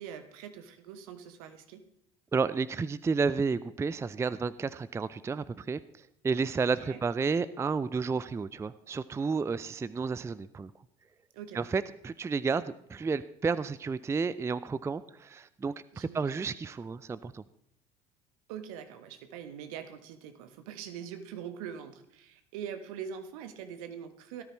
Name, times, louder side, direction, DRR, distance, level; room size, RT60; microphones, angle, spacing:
voice 1, 0.0-1.8 6.6-7.0 11.3-11.7 15.9-16.5 18.5-24.4, right 8 dB, 65° right, 8 dB, 1.4 m, -43 dB
voice 2, 2.3-5.8 6.2-10.7 11.5-17.4, right 5 dB, 15° right, 16 dB, 0.4 m, -31 dB
18.0 x 13.0 x 3.1 m, 0.74 s
figure-of-eight pair, 60°, 19 cm